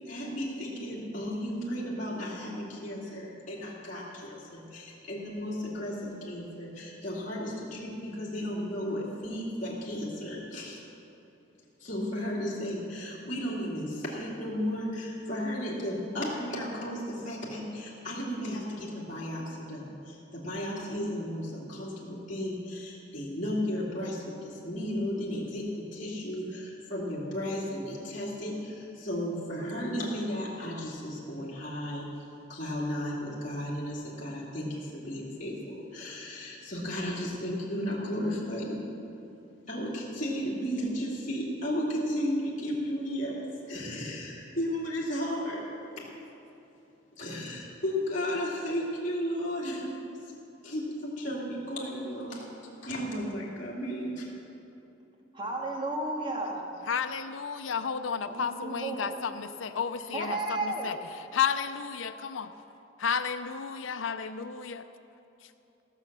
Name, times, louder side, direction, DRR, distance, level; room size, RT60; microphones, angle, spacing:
voice 1, 0.0-10.8 11.8-32.1 32.5-38.8 39.7-45.6 46.0-46.1 47.2-49.9 50.2-50.3 50.6-52.5 52.8-54.3, equal, 40° left, -7 dB, 2.7 m, -34 dB
voice 2, 55.3-56.6 58.3-59.1 60.1-60.9, right 2 dB, 25° right, -1 dB, 1.8 m, -33 dB
voice 3, 56.9-61.0 61.3-62.5 63.0-64.8, left 6 dB, 90° left, 9 dB, 0.5 m, -32 dB
16.0 x 7.3 x 6.8 m, 2.9 s
head